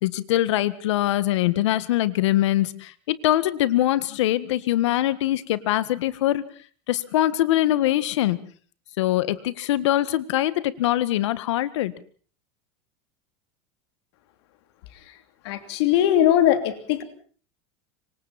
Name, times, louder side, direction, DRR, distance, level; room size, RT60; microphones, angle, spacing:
voice 1, 0.0-6.5 6.9-8.4 9.0-11.9, left 14 dB, 90° left, 16 dB, 1.7 m, -23 dB
voice 2, 15.4-17.0, left 11 dB, 65° left, 9 dB, 3.0 m, -20 dB
26.5 x 24.5 x 4.3 m, 0.43 s
supercardioid pair, 165°, 15 cm